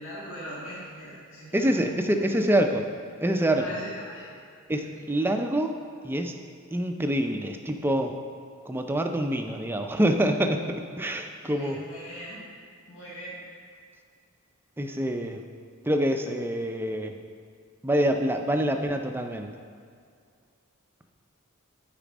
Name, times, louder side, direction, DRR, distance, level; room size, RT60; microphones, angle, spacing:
voice 1, 0.0-2.3 3.6-4.3 4.7-4.9 11.4-12.4 12.9-13.4, equal, 60° left, -8 dB, 1.9 m, -41 dB
voice 2, 1.5-2.8 3.2-3.8 4.7-5.7 6.0-6.4 6.7-8.2 8.7-11.8 14.8-15.4 15.8-17.2 17.8-19.6, right 1 dB, 10° right, 5 dB, 0.4 m, -26 dB
8.7 x 5.0 x 6.1 m, 2.3 s
head